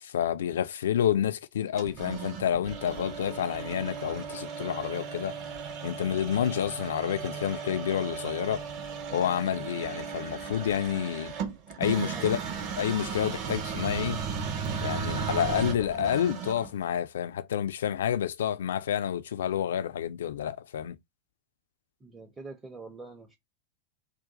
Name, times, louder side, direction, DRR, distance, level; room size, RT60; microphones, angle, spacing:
voice 1, 0.0-5.4 5.8-8.6 9.1-11.3 11.8-12.4 12.8-14.2 14.8-21.0, left 9 dB, 60° left, 0.3 m, -29 dB
sound 1, 1.8-16.8, right 6 dB, 35° right, 0.9 m, -36 dB
voice 2, 11.9-12.4 22.0-23.4, right 4 dB, 15° right, 0.6 m, -45 dB
2.6 x 2.3 x 3.8 m
figure-of-eight pair, 90°, 0 cm